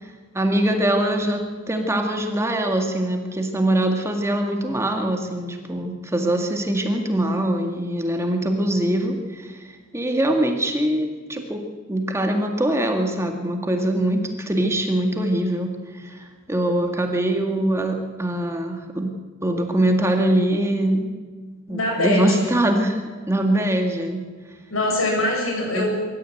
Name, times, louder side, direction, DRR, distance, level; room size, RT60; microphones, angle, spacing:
voice 1, 0.0-9.6 9.9-11.6 11.9-19.1 19.4-21.1 21.7-23.0 23.3-24.2 25.7-25.9, right 1 dB, 15° right, 3 dB, 1.9 m, -23 dB
voice 2, 21.7-22.5 24.7-25.9, left 1 dB, 85° left, 0 dB, 7.8 m, -23 dB
24.0 x 13.5 x 9.1 m, 1.5 s
head